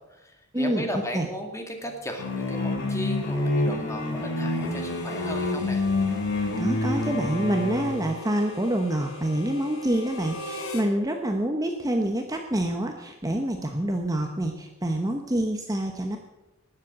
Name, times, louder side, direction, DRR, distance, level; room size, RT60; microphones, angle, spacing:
voice 1, 0.1-5.8, equal, 15° left, 3 dB, 2.2 m, -36 dB
sound 1, 2.2-8.0, left 2 dB, 60° left, 2.7 m, -27 dB
Harmonica, 4.6-10.9, left 2 dB, 75° left, 2.9 m, -40 dB
voice 2, 6.6-16.2, right 1 dB, 15° right, 3 dB, 1.0 m, -27 dB
19.5 x 7.5 x 7.5 m, 1.1 s
head